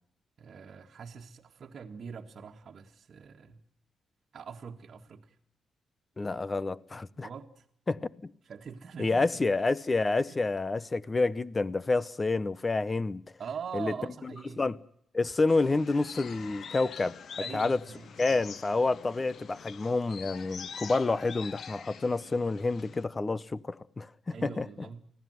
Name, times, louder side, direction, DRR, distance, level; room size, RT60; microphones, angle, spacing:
voice 1, 0.4-3.6 4.3-5.4 7.1-7.6 8.4-9.5 10.3-10.4 13.4-14.7 17.4-18.4 24.3-25.0, right 6 dB, 50° right, 1.7 m, -43 dB
voice 2, 6.2-7.3 7.9-8.3 9.0-13.2 13.7-13.9 14.6-14.8 15.1-17.2 17.5-17.8 18.2-24.7, left 3 dB, 25° left, 0.9 m, -28 dB
sound 1, 15.5-23.0, left 7 dB, 60° left, 1.0 m, -45 dB
24.5 x 16.5 x 9.4 m
cardioid pair, 100°, 0 cm